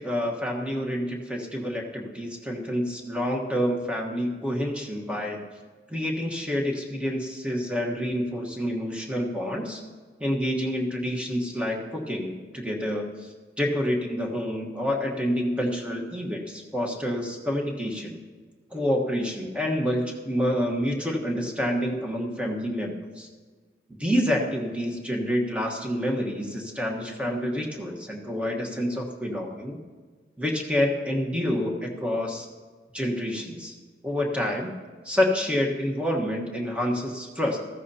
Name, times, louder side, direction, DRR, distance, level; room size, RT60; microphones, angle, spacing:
voice 1, 0.0-5.4 5.9-9.8 10.2-13.1 13.6-18.2 18.7-23.3 24.0-29.8 30.4-32.5 32.9-33.7 34.0-34.7 35.0-37.6, equal, 5° right, 0 dB, 1.2 m, -28 dB
14.5 x 14.0 x 2.8 m, 1.5 s
head